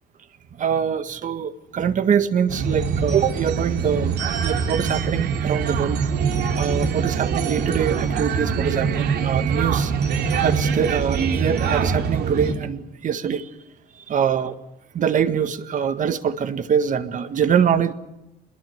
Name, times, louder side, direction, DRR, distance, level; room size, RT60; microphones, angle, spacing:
voice 1, 0.6-4.1 4.4-6.0 6.6-9.9 10.4-13.5 14.1-14.6 14.9-17.9, right 8 dB, 50° right, 10 dB, 1.8 m, -23 dB
sound 1, 2.5-12.5, right 6 dB, 75° right, 3.6 m, -23 dB
23.0 x 21.5 x 7.9 m, 0.92 s
cardioid pair, 110°, 17 cm